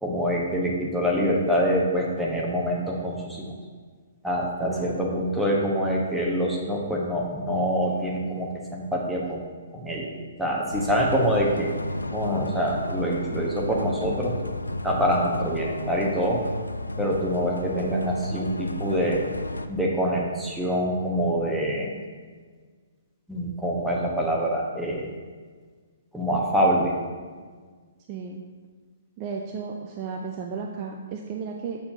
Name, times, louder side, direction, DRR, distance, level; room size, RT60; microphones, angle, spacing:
voice 1, 0.0-3.5 4.2-9.4 9.7-10.1 10.4-11.7 12.1-14.4 14.8-16.4 17.0-19.2 19.7-21.9 23.3-25.2 26.1-27.0, equal, 5° right, -3 dB, 1.0 m, -25 dB
voice 2, 4.6-5.1 28.1-28.4 29.2-31.8, right 5 dB, 30° right, 1 dB, 0.5 m, -34 dB
sound 1, 10.7-19.7, left 1 dB, 75° left, 0.4 m, -33 dB
7.0 x 6.8 x 2.8 m, 1.5 s
figure-of-eight pair, 125°, 0 cm